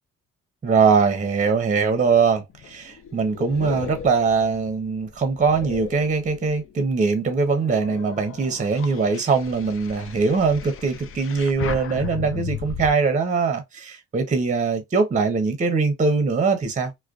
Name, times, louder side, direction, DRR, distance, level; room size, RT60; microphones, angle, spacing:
voice 1, 0.6-16.9, right 5 dB, 25° right, 0.7 m, -22 dB
sound 1, 2.5-6.7 7.3-12.9, left 8 dB, 45° left, 0.5 m, -36 dB
2.4 x 2.2 x 2.3 m
cardioid pair, 90°, 30 cm